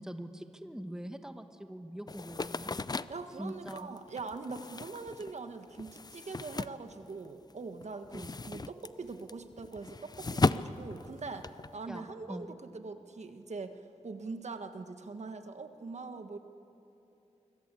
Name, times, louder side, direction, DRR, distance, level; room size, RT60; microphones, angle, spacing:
voice 1, 0.0-2.7 3.4-3.9 8.1-8.4 11.9-12.5, equal, 5° right, 7 dB, 1.3 m, -43 dB
sound 1, 2.1-7.5 7.8-11.7, left 3 dB, 35° left, 0.5 m, -36 dB
voice 2, 3.1-16.4, right 4 dB, 70° right, 7 dB, 1.5 m, -42 dB
25.0 x 25.0 x 8.5 m, 2.9 s
wide cardioid pair, 115°, 12 cm